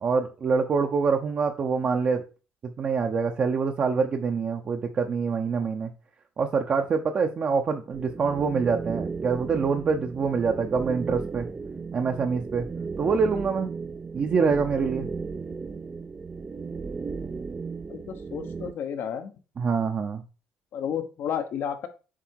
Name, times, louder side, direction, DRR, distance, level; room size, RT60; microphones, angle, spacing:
voice 1, 0.0-2.2 2.6-5.9 6.4-11.5 11.9-12.7 13.0-13.7 14.1-15.1 19.6-20.2, right 5 dB, 45° right, 4 dB, 0.8 m, -25 dB
sound 1, 7.9-18.7, right 4 dB, 25° right, 0.5 m, -35 dB
voice 2, 17.9-19.3 20.7-21.9, left 8 dB, 65° left, 9 dB, 1.1 m, -32 dB
7.6 x 3.4 x 4.7 m, 0.34 s
cardioid pair, 85°, 4 cm